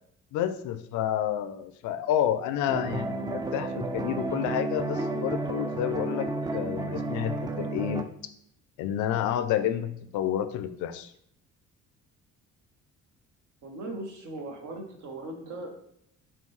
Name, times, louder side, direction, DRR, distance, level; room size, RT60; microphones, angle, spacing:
voice 1, 0.3-8.1 8.8-11.1, left 10 dB, 75° left, 11 dB, 0.5 m, -30 dB
sound 1, 2.7-8.0, right 2 dB, 15° right, 0.3 m, -32 dB
voice 2, 13.6-15.8, right 2 dB, 75° right, 3 dB, 1.0 m, -38 dB
5.6 x 2.3 x 3.1 m, 0.71 s
cardioid pair, 80°, 30 cm